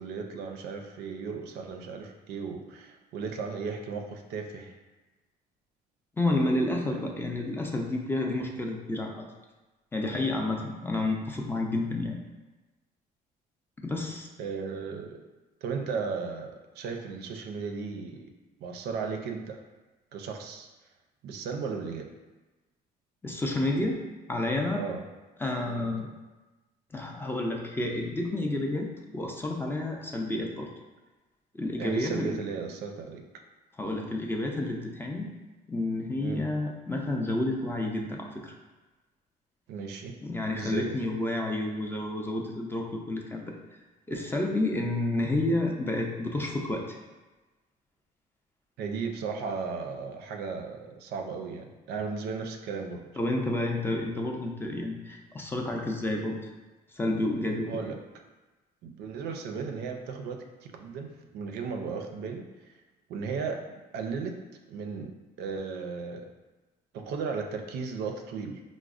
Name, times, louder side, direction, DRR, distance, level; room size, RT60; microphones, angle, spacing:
voice 1, 0.0-4.7 6.9-7.0 14.4-15.2 15.6-18.3 18.6-19.6 20.1-20.7 21.2-22.1 24.7-25.0 25.5-25.9 31.8-33.4 36.2-36.4 39.7-40.2 40.5-40.9 48.8-53.0 57.7-58.0 58.8-62.7 63.1-64.4 64.7-65.1 65.4-66.3 66.9-68.6, right 5 dB, 75° right, 4 dB, 0.4 m, -35 dB
voice 2, 6.2-9.2 9.9-12.2 13.8-14.3 23.2-24.0 24.3-24.8 25.4-26.1 26.9-30.7 31.5-32.4 33.8-35.3 35.7-38.5 40.2-43.5 44.1-47.0 53.2-56.4 56.9-57.7, left 2 dB, 15° left, 1 dB, 0.4 m, -30 dB
4.9 x 2.0 x 2.4 m, 1.2 s
cardioid pair, 110°, 17 cm